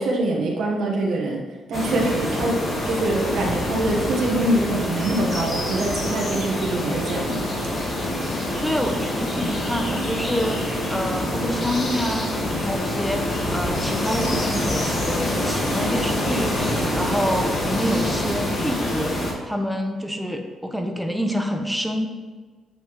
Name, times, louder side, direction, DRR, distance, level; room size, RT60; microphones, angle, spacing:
voice 1, 0.0-1.4 1.7-7.7, right 2 dB, 75° right, -2 dB, 1.2 m, -24 dB
sound 1, 1.7-19.3, left 1 dB, 45° left, 1.7 m, -26 dB
voice 2, 8.6-19.2 19.5-22.1, equal, ahead, 4 dB, 0.9 m, -27 dB
8.0 x 5.5 x 3.1 m, 1.4 s
cardioid pair, 90°, 0 cm